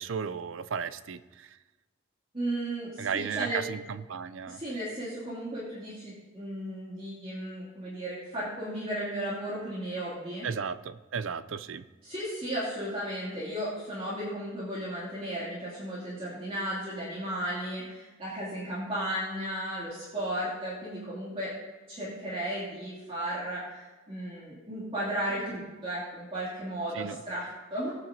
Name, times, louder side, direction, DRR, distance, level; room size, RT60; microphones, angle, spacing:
voice 1, 0.0-1.6 3.0-4.6 10.4-11.8 26.9-27.2, right 6 dB, 75° right, 15 dB, 0.5 m, -34 dB
voice 2, 2.3-3.6 4.5-10.5 12.0-21.5 21.9-28.0, right 1 dB, 30° right, -9 dB, 2.8 m, -35 dB
19.0 x 8.9 x 2.8 m, 1.2 s
head